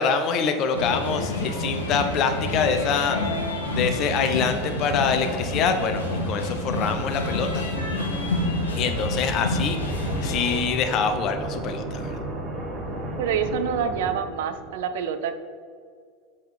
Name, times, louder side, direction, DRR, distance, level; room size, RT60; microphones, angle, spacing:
voice 1, 0.0-3.2 3.7-7.6 8.8-12.2, left 6 dB, 45° left, 7 dB, 0.7 m, -25 dB
sound 1, 0.7-10.6, left 2 dB, 80° left, 1.0 m, -28 dB
sound 2, 6.2-14.8, right 1 dB, 35° right, 1.1 m, -35 dB
voice 2, 13.2-15.3, right 7 dB, 65° right, 10 dB, 0.5 m, -27 dB
7.4 x 3.6 x 4.4 m, 2.1 s
figure-of-eight pair, 80°, 0 cm